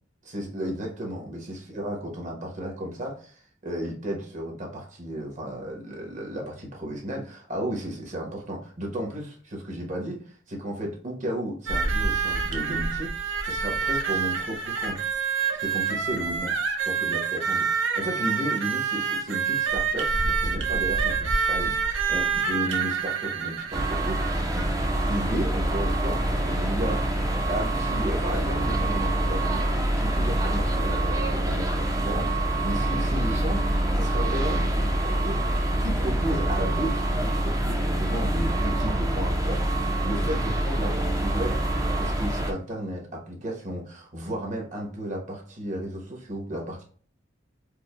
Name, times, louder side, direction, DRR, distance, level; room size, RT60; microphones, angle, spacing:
voice 1, 0.2-15.0 15.5-16.5 16.9-24.7 25.1-27.2 27.5-41.6 42.0-46.8, equal, 40° right, 0 dB, 1.0 m, -34 dB
sound 1, 11.7-24.7 25.6-25.7 26.1-26.3, right 5 dB, 80° right, 0.6 m, -27 dB
sound 2, 23.7-42.5, right 1 dB, 20° right, 0.4 m, -25 dB
4.7 x 2.0 x 2.3 m, 0.43 s
head